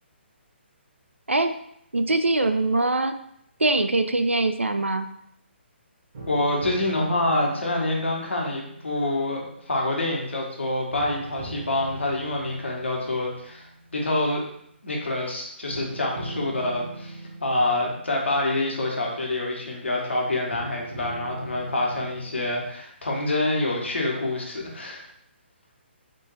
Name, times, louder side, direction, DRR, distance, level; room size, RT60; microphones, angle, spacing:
voice 1, 1.9-3.2 3.6-5.1, right 2 dB, 90° right, 8 dB, 0.4 m, -22 dB
sound 1, 6.1-10.5 10.9-14.2 15.7-19.7 20.5-22.7, right 2 dB, 45° right, 1.1 m, -40 dB
voice 2, 6.3-14.4 14.8-25.1, left 2 dB, 75° left, -1 dB, 1.2 m, -27 dB
3.6 x 2.6 x 4.1 m, 0.71 s
figure-of-eight pair, 135°, 6 cm